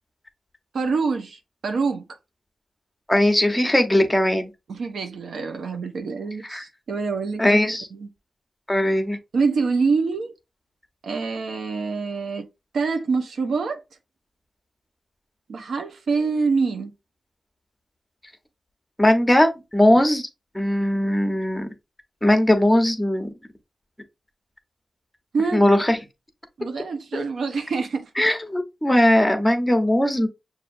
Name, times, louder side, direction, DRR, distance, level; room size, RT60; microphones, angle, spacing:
voice 1, 0.7-2.0 4.7-8.1 9.3-10.3 11.0-12.4 12.7-13.8 15.5-16.9 25.3-25.6 26.6-28.1, right 4 dB, 75° right, 0.8 m, -25 dB
voice 2, 3.1-4.5 6.5-6.6 7.4-7.9 8.7-9.2 19.0-20.3 20.5-21.7 22.2-23.3 25.5-26.0 28.2-30.3, left 1 dB, 10° left, 0.9 m, -19 dB
6.2 x 2.7 x 2.6 m
cardioid pair, 65°, 0 cm